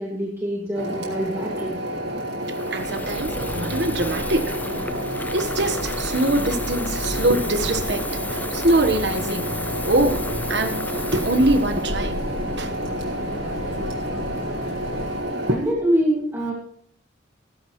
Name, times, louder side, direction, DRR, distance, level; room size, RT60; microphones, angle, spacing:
voice 1, 0.0-1.8 15.5-16.5, equal, 15° right, 2.3 m, -24 dB
sound 1, 0.7-15.6, right 1 dB, 75° right, 5.3 m, -29 dB
Water tap faucet / Fill (with liquid), 2.4-12.7, left 2 dB, 10° left, 0.4 m, -35 dB
voice 2, 2.7-4.9 5.3-9.5 9.8-12.2 12.6-12.7 13.7-14.2 15.2-15.7, right 1 dB, 60° right, 1.4 m, -24 dB
sound 2, 2.8-15.2, left 1 dB, 80° left, 1.1 m, -34 dB
17.0 x 13.5 x 3.2 m
head